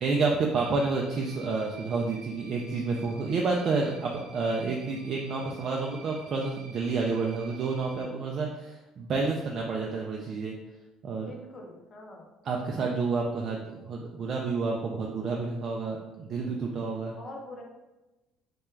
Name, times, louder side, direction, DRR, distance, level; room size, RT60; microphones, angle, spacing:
voice 1, 0.0-10.6 11.0-11.3 12.4-17.1, right 4 dB, 50° right, -1 dB, 0.3 m, -29 dB
sound 1, 0.5-8.0, right 4 dB, 70° right, 0.8 m, -50 dB
voice 2, 11.2-12.3 17.1-17.6, left 1 dB, 40° left, 0 dB, 0.6 m, -44 dB
2.2 x 2.2 x 3.1 m, 1.1 s
supercardioid pair, 70°, 0 cm